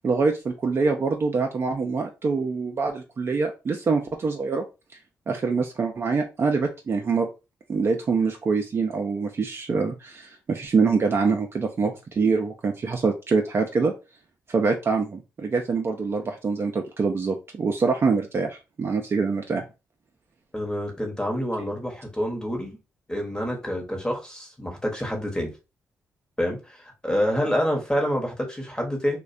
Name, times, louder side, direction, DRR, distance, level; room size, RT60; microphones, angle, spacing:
voice 1, 0.0-4.6 5.3-7.3 7.7-13.9 14.5-19.6, right 4 dB, 45° right, 0.4 m, -25 dB
voice 2, 20.5-22.8 23.1-25.5 26.4-29.2, equal, 15° left, 0.9 m, -27 dB
2.3 x 2.1 x 2.5 m
supercardioid pair, 55°, 6 cm